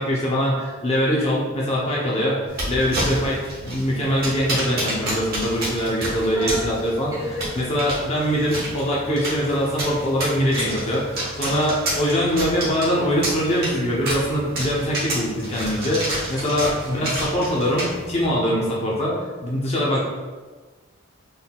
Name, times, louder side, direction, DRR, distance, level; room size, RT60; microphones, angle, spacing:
voice 1, 0.0-2.4 2.7-7.1 7.5-20.0, equal, 30° left, -5 dB, 0.6 m, -23 dB
sound 1, 2.5-18.2, right 1 dB, 45° right, 1.2 m, -30 dB
voice 2, 6.3-6.7 7.1-7.5 16.9-17.2, left 1 dB, 15° right, -5 dB, 0.8 m, -33 dB
3.9 x 3.7 x 2.3 m, 1.3 s
head